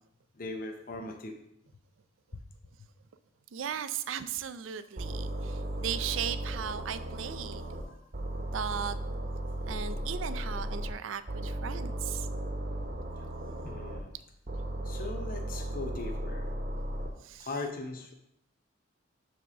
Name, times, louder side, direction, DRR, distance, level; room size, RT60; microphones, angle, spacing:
voice 1, 0.3-1.4 2.3-2.4 4.8-4.9 7.8-8.0 10.3-10.5 13.2-13.3 13.6-14.1 14.8-16.5 17.4-18.1, left 3 dB, 45° left, 4 dB, 0.6 m, -40 dB
voice 2, 3.5-7.7 8.5-9.0 9.7-12.3 17.2-17.5, right 8 dB, 80° right, 12 dB, 0.4 m, -36 dB
sound 1, 5.0-7.8 8.1-10.9 11.3-14.0 14.5-17.1, right 1 dB, 45° right, 1.0 m, -36 dB
6.9 x 3.6 x 6.1 m, 0.78 s
head